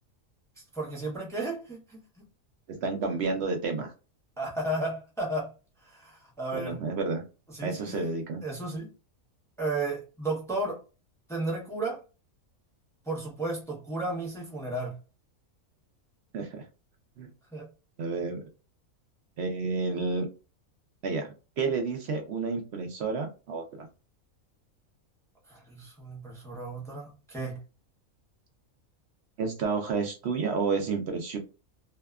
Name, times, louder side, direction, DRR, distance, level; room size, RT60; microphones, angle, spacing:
voice 1, 0.7-2.0 4.4-5.5 5.8-6.8 7.5-8.9 9.6-10.8 11.3-12.0 13.1-15.0 17.5-17.7 25.5-27.6, right 2 dB, 5° left, -3 dB, 0.5 m, -33 dB
voice 2, 2.7-3.9 6.5-7.2 7.6-8.4 16.3-16.6 17.2-17.3 18.0-18.4 19.4-20.3 21.0-23.9 29.4-31.4, right 4 dB, 65° right, 4 dB, 0.7 m, -30 dB
2.7 x 2.2 x 2.2 m, 0.32 s
omnidirectional pair, 1.5 m